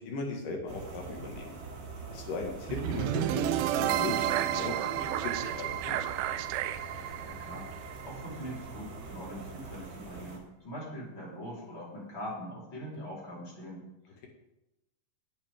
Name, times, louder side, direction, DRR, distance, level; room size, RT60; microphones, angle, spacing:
voice 1, 0.0-1.6 2.1-6.0, left 4 dB, 65° left, 1 dB, 3.4 m, -38 dB
sound 1, 0.7-10.4, right 3 dB, 70° right, 3.9 m, -44 dB
sound 2, 2.7-8.8, right 12 dB, 85° right, 2.4 m, -31 dB
voice 2, 7.2-7.7 8.0-14.3, equal, 30° left, -5 dB, 4.9 m, -42 dB
17.5 x 9.4 x 3.7 m, 0.91 s
omnidirectional pair, 4.2 m